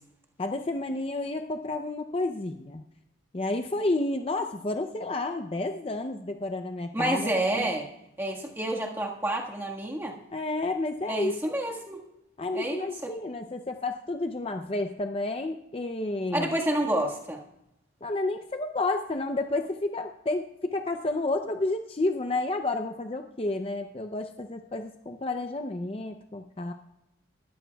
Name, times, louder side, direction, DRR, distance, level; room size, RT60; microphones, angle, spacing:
voice 1, 0.4-2.8 3.3-7.8 10.3-11.3 12.4-16.5 18.0-26.7, left 2 dB, 30° left, 5 dB, 0.5 m, -31 dB
voice 2, 6.9-7.9 8.2-10.1 11.1-12.0 12.5-13.1 16.3-17.4, right 1 dB, 15° right, -1 dB, 1.5 m, -29 dB
20.5 x 14.0 x 2.3 m, 0.84 s
head